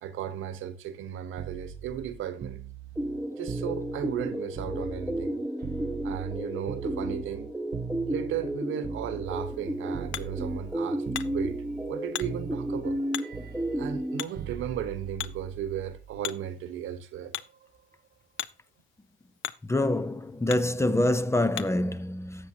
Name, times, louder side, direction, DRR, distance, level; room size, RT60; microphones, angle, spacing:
voice 1, 0.0-2.6 3.4-5.3 6.0-7.5 8.1-11.6 11.9-13.0 13.8-17.3, right 9 dB, 85° right, 1.4 m, -35 dB
sound 1, 1.4-5.3 5.6-9.6 9.9-10.8 11.0-11.9 12.2-16.2 17.4-17.6, right 7 dB, 50° right, 0.9 m, -41 dB
sound 2, 3.0-14.2, right 1 dB, 5° right, 1.4 m, -33 dB
Hammer, 9.3-21.9, left 12 dB, 80° left, 0.7 m, -43 dB
voice 2, 19.7-22.5, left 1 dB, 15° left, 0.7 m, -26 dB
12.5 x 7.5 x 2.9 m
cardioid pair, 90°, 20 cm